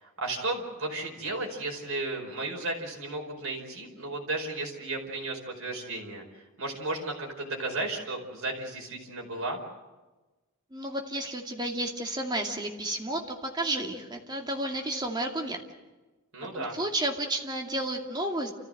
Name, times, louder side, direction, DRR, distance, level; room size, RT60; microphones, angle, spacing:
voice 1, 0.0-9.6 16.3-16.8, right 2 dB, 65° right, 1 dB, 4.9 m, -34 dB
voice 2, 10.7-15.6 16.5-18.5, right 1 dB, 20° right, 2 dB, 2.4 m, -32 dB
29.5 x 15.0 x 7.9 m, 1.2 s
head